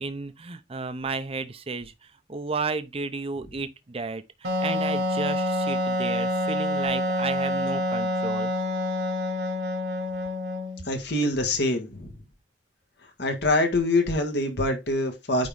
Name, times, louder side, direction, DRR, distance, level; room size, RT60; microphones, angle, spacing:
voice 1, 0.0-8.5, right 4 dB, 35° right, 0.7 m, -33 dB
Wind instrument woodwind instrument, 4.4-10.9, left 1 dB, 70° right, 1.5 m, -27 dB
voice 2, 10.9-12.1 13.2-15.5, left 2 dB, 70° left, 1.7 m, -25 dB
9.4 x 3.7 x 3.6 m
head